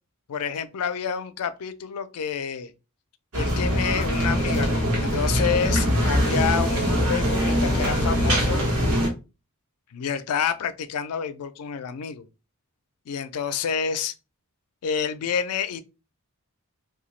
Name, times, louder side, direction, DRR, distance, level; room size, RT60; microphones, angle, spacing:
voice 1, 0.3-2.7 3.3-8.6 9.9-12.3 13.1-14.1 14.8-15.8, left 7 dB, 80° left, 0.4 m, -28 dB
sound 1, 3.3-9.1, equal, 75° right, 1.0 m, -22 dB
2.8 x 2.2 x 3.1 m
head